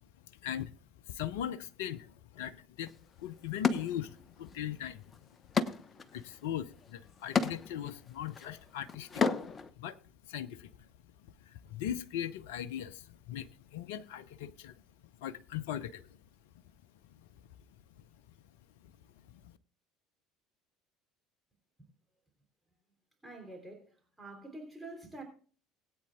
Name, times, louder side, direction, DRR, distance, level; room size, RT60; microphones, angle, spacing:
voice 1, 0.4-0.7 1.1-2.9 3.2-5.1 6.1-9.2 9.8-10.0 10.2-10.9 11.4-14.8 15.2-16.1 19.3-19.5, left 10 dB, 70° left, 0.6 m, -39 dB
sound 1, 2.8-2.9 3.6-4.6 4.9-9.7, left 5 dB, 30° left, 0.9 m, -33 dB
voice 2, 23.2-23.9 24.2-25.2, right 2 dB, 5° right, 3.2 m, -46 dB
21.0 x 8.6 x 2.3 m
figure-of-eight pair, 65°, 0 cm